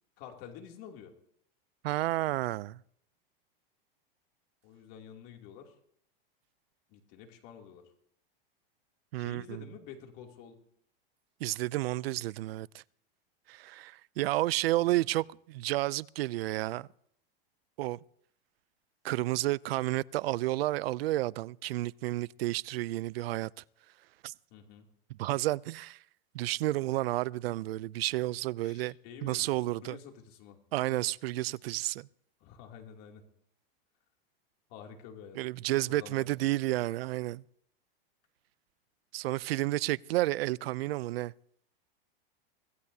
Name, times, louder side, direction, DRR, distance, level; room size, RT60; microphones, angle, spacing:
voice 1, 0.2-1.1 4.6-5.7 6.9-7.8 9.1-10.6 14.8-14.9 24.5-24.9 28.6-29.4 29.8-30.6 32.4-33.2 34.7-35.4 35.9-36.6, left 8 dB, 45° left, 2.8 m, -49 dB
voice 2, 1.8-2.8 9.1-9.6 11.4-12.8 13.5-16.9 17.8-18.0 19.0-23.6 24.2-24.3 25.1-26.0 26.3-29.0 29.2-30.0 30.7-32.1 35.4-37.4 39.1-41.3, right 17 dB, 85° right, 0.5 m, -31 dB
25.0 x 16.0 x 2.7 m
supercardioid pair, 150°, 29 cm